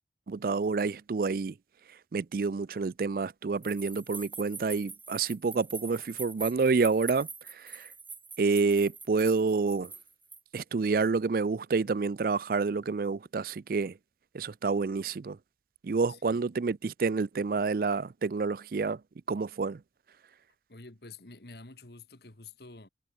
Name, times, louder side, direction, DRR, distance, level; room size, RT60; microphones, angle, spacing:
voice 1, 0.3-1.5 2.1-7.9 8.4-9.9 10.5-13.9 14.3-15.4 15.8-19.0 19.3-19.8, right 4 dB, 55° right, 0.4 m, -28 dB
sound 1, 3.6-10.6, right 4 dB, 10° right, 0.7 m, -44 dB
voice 2, 16.1-16.5 20.7-22.9, left 3 dB, 65° left, 1.8 m, -49 dB
head